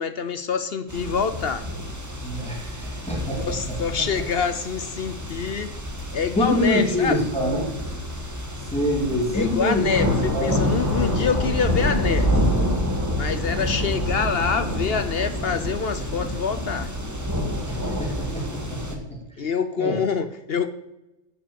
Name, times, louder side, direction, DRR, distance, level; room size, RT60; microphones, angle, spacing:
voice 1, 0.0-1.6 3.4-5.7 6.1-7.2 9.3-12.4 13.1-16.9 19.4-20.7, left 6 dB, 55° left, 11 dB, 0.9 m, -26 dB
sound 1, 0.9-19.0, left 1 dB, 15° right, 1.5 m, -27 dB
voice 2, 2.2-3.8 6.4-7.7 8.7-9.9 10.3-10.5 17.7-19.5 19.8-20.0, left 1 dB, 5° left, -1 dB, 2.4 m, -26 dB
15.0 x 6.0 x 6.9 m, 0.94 s
omnidirectional pair, 1.3 m